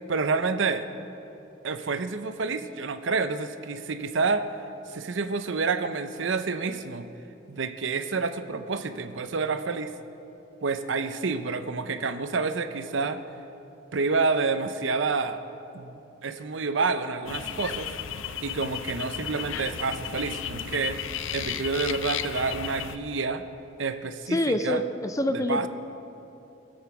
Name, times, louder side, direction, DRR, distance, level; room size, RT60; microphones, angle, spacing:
voice 1, 0.1-0.9 1.6-4.5 4.9-7.1 7.5-9.9 10.6-13.2 13.9-15.4 15.7-17.9 18.4-21.0 21.3-23.4 23.8-24.8 25.3-25.7, right 4 dB, 65° right, 10 dB, 0.6 m, -28 dB
sound 1, 17.3-23.0, left 9 dB, 70° left, 0.5 m, -34 dB
voice 2, 24.3-25.7, left 1 dB, 15° left, 9 dB, 0.4 m, -26 dB
20.0 x 7.8 x 5.8 m, 2.9 s
head